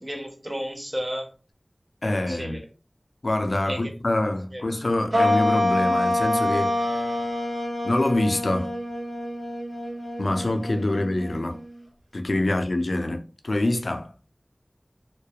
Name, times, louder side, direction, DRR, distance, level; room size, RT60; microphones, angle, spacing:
voice 1, 0.0-1.3 2.0-2.6 3.7-3.9 4.5-4.6, equal, 30° right, 0.6 m, -33 dB
voice 2, 2.0-2.6 3.2-7.0 7.8-8.7 10.2-11.6 12.1-14.1, left 1 dB, 80° left, 0.3 m, -25 dB
sound 1, 5.1-11.8, left 1 dB, 75° right, 1.0 m, -26 dB
2.3 x 2.1 x 2.7 m
wide cardioid pair, 50°, 0 cm